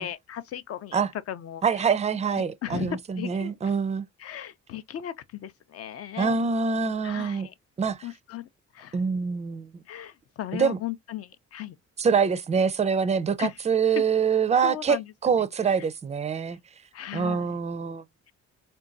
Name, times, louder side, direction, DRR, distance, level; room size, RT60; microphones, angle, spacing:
voice 1, 0.0-1.9 2.3-3.5 4.2-6.4 7.0-7.5 8.0-9.0 9.9-11.8 13.4-13.6 14.6-15.1 15.8-15.9 16.9-17.6, left 11 dB, 50° left, 0.5 m, -37 dB
voice 2, 1.6-4.0 6.2-7.5 7.8-8.0 8.9-9.7 10.5-10.8 12.0-15.0 15.2-16.6 17.1-18.0, right 6 dB, 25° right, 0.4 m, -25 dB
3.8 x 2.3 x 2.4 m
cardioid pair, 90°, 30 cm